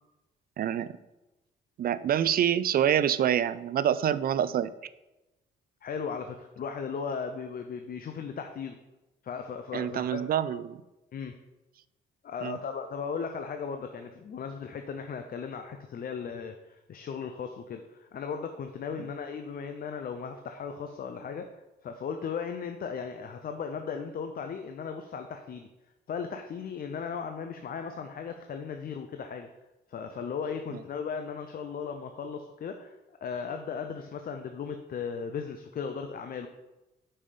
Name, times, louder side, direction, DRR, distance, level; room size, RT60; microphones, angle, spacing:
voice 1, 0.6-0.9 1.8-4.7 9.7-10.8 12.4-12.6 30.7-30.8, right 10 dB, 50° right, 15 dB, 0.4 m, -26 dB
voice 2, 5.8-8.8 9.2-10.3 11.1-11.4 12.2-25.7 26.1-29.5 29.9-32.9 33.2-36.5, left 6 dB, 50° left, 6 dB, 0.6 m, -36 dB
5.5 x 5.4 x 5.0 m, 1.0 s
cardioid pair, 90°, 20 cm